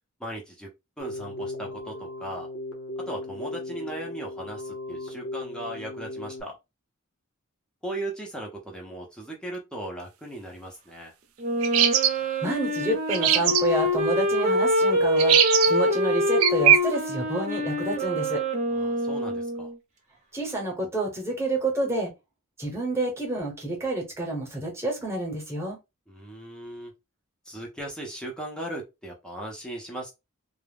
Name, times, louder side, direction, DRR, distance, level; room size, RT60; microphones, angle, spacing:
voice 1, 0.2-0.7 1.0-2.5 3.1-6.6 7.8-11.1 18.7-19.7 26.1-26.9 27.5-30.1, right 1 dB, 5° left, -1 dB, 0.5 m, -37 dB
Keyboard (musical), 1.0-6.4, left 2 dB, 65° left, 0.6 m, -37 dB
Wind instrument woodwind instrument, 11.4-19.8, equal, 35° right, 0.7 m, -25 dB
sound 1, 11.6-12.1 13.1-13.6 15.2-15.7 16.4-16.8, right 10 dB, 75° right, 0.4 m, -19 dB
voice 2, 12.4-15.4 15.7-18.4 20.3-22.1 22.6-25.8, right 1 dB, 10° right, -1 dB, 0.9 m, -29 dB
2.3 x 2.0 x 3.3 m, 0.24 s
head